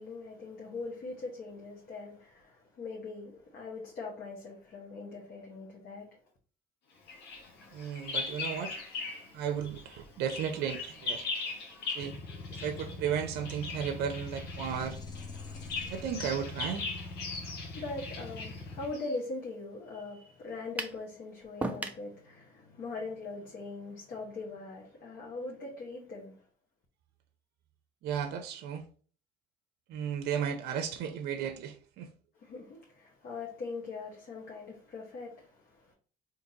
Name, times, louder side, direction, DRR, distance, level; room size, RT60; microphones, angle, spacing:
voice 1, 0.0-6.1 17.2-26.3 32.4-35.9, left 3 dB, 60° left, 1.0 m, -41 dB
Bird vocalization bird call bird song, 7.1-9.3 9.6-19.2, left 4 dB, 85° left, 1.1 m, -40 dB
voice 2, 7.7-8.8 9.3-11.3 11.9-12.2 12.6-15.0 15.9-16.9 28.0-28.8 29.9-32.1, right 8 dB, 75° right, 0.5 m, -34 dB
sound 1, 12.0-18.9, left 2 dB, 25° left, 0.7 m, -43 dB
sound 2, 20.8-21.0 21.6-22.1, right 2 dB, 10° right, 0.4 m, -34 dB
3.8 x 2.8 x 2.7 m
cardioid pair, 110°, 17 cm